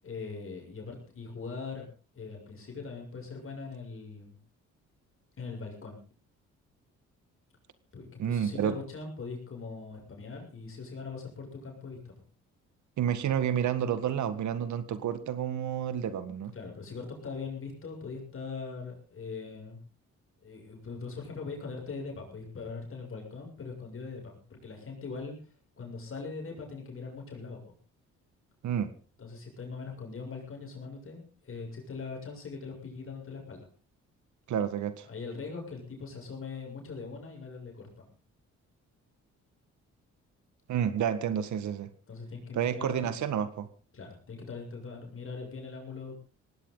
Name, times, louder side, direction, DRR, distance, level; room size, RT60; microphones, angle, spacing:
voice 1, 0.0-4.4 5.4-6.0 7.9-12.2 16.5-19.8 20.4-25.4 25.8-27.7 29.2-33.7 35.1-38.0 42.1-43.1 43.9-46.3, left 4 dB, 45° left, 1 dB, 7.0 m, -41 dB
voice 2, 8.2-8.8 13.0-16.5 28.6-28.9 34.5-35.1 40.7-41.9 42.5-43.7, right 9 dB, 70° right, 12 dB, 1.8 m, -30 dB
18.5 x 16.5 x 4.0 m, 0.37 s
cardioid pair, 90°, 30 cm